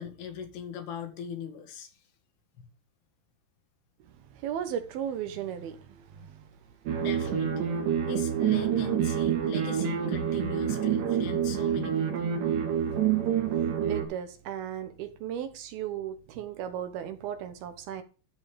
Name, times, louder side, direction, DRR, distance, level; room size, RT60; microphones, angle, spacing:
voice 1, 0.0-1.9 6.1-6.3 6.9-7.8 8.1-12.3, left 7 dB, 75° left, 3.8 m, -40 dB
voice 2, 4.4-6.4 13.9-18.0, right 9 dB, 70° right, 2.8 m, -36 dB
sound 1, 6.9-14.0, right 9 dB, 85° right, 4.4 m, -27 dB
13.0 x 5.3 x 5.1 m
omnidirectional pair, 4.7 m